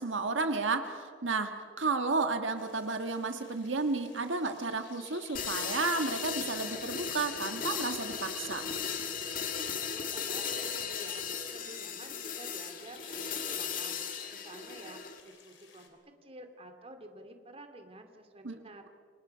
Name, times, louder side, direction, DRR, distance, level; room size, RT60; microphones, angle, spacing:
voice 1, 0.0-8.6 18.4-18.5, right 3 dB, 80° right, 6 dB, 1.5 m, -32 dB
sound 1, 2.6-15.9, left 6 dB, 75° left, 3.7 m, -56 dB
sound 2, 5.3-15.2, left 6 dB, 45° left, 2.0 m, -36 dB
voice 2, 9.8-14.0 14.3-18.8, right 1 dB, 30° right, 6 dB, 2.4 m, -50 dB
28.5 x 27.0 x 5.6 m, 2.1 s
head